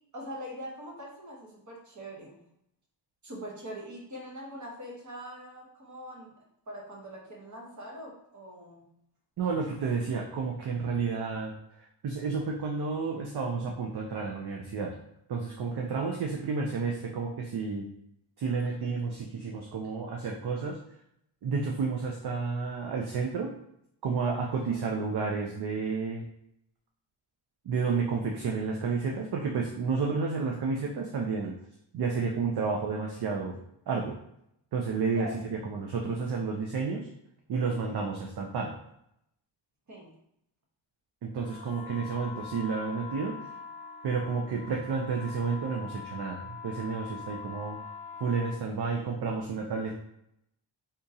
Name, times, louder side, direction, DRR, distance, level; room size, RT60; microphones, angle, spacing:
voice 1, 0.1-2.4 3.2-6.4 6.7-8.9 24.6-24.9 35.1-35.4 39.9-40.1, equal, 40° right, -1 dB, 1.0 m, -43 dB
voice 2, 9.4-11.5 12.0-14.9 15.3-17.9 18.4-20.8 21.4-23.5 24.0-26.2 27.7-31.5 31.9-33.6 33.9-34.2 34.7-37.1 37.5-38.7 41.2-43.4 44.0-47.8 48.2-50.0, right 4 dB, 55° right, 0 dB, 0.6 m, -31 dB
sound 1, 41.4-48.6, left 6 dB, 15° left, 0.5 m, -43 dB
3.7 x 2.8 x 2.7 m, 0.76 s
wide cardioid pair, 125°, 47 cm